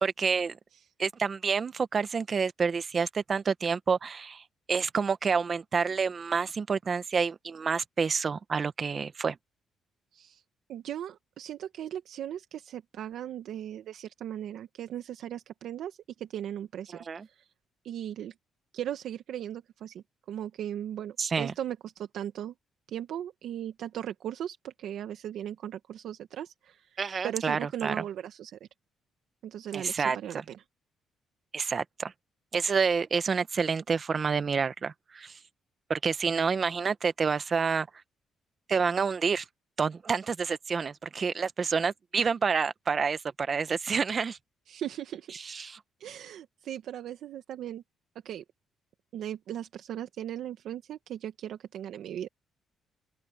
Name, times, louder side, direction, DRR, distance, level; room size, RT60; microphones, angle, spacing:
voice 1, 0.0-0.6 1.0-4.4 4.7-9.4 17.1-17.3 21.2-21.5 27.0-27.9 29.7-30.2 31.5-32.1 32.5-35.4 35.9-37.9 38.7-39.4 39.8-44.4 45.4-45.8, right 5 dB, 40° right, 1.3 m, -28 dB
voice 2, 10.1-10.4 10.7-17.5 17.8-18.3 18.7-22.5 22.9-28.7 29.4-30.6 44.7-45.3 46.0-47.8 48.2-48.4 49.1-52.3, right 11 dB, 75° right, 1.4 m, -38 dB
open air
cardioid pair, 90°, 0 cm